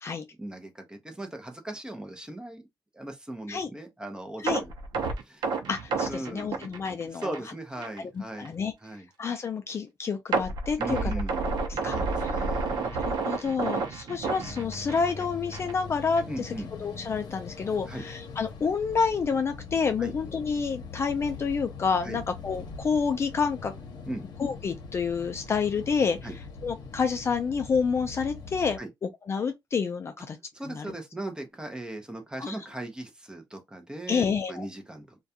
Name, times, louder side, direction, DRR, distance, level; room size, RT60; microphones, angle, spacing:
voice 1, 0.4-2.6 2.9-4.7 5.2-5.5 6.1-6.7 7.1-8.5 8.8-9.1 10.8-11.6 11.9-13.0 16.3-16.7 17.9-18.0 20.0-20.1 22.0-22.2 24.0-24.3 26.2-26.4 28.8-28.9 30.5-35.2, right 1 dB, 10° right, 0.6 m, -38 dB
sound 1, 4.5-7.5 7.8-8.0 8.5-8.6 10.3-15.2 15.5-15.7 16.2-16.3, right 4 dB, 65° right, 0.6 m, -30 dB
voice 2, 5.7-7.3 8.4-8.7 9.2-11.0 11.8-12.0 13.0-16.5 16.8-23.7 24.4-26.2 26.6-28.8 29.3-30.4 30.7-30.9 32.4-32.5 34.1-34.6, left 5 dB, 35° left, 0.3 m, -28 dB
sound 2, 14.4-28.8, left 4 dB, 55° left, 0.8 m, -42 dB
2.3 x 2.2 x 2.7 m
cardioid pair, 135°, 8 cm